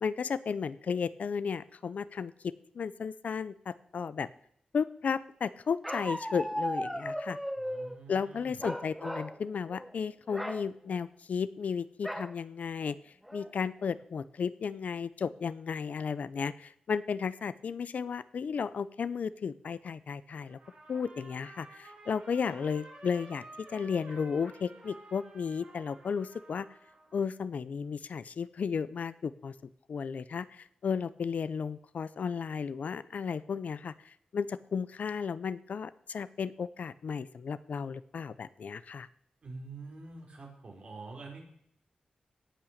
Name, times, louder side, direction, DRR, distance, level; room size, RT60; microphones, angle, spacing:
voice 1, 0.0-2.3 2.7-4.3 4.7-7.4 8.1-13.0 13.3-20.6 20.9-23.4 23.7-26.7 27.1-29.5 29.9-39.1, left 6 dB, 75° left, 16 dB, 0.6 m, -34 dB
Bark, 5.8-8.0 8.6-9.4 9.7-9.9 10.3-10.6 12.0-12.3 12.9-13.0 13.3-13.7, equal, ahead, 1.1 m, -36 dB
voice 2, 7.6-8.6 39.4-41.4, right 3 dB, 50° right, 0 dB, 4.2 m, -46 dB
Trumpet, 20.5-27.2, right 2 dB, 65° right, 5.7 m, -52 dB
17.5 x 6.1 x 6.5 m, 0.68 s
wide cardioid pair, 135°, 3 cm